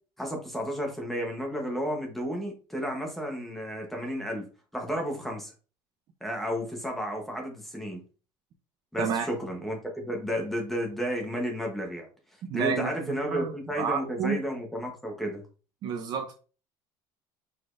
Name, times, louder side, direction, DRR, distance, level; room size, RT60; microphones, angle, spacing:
voice 1, 0.2-4.4 4.7-5.5 6.2-8.0 8.9-12.1 12.5-15.4, equal, ahead, 0.9 m, -32 dB
voice 2, 12.5-14.4 15.8-16.3, right 7 dB, 40° right, 0.6 m, -30 dB
5.0 x 4.1 x 2.5 m
cardioid pair, 180°, 11 cm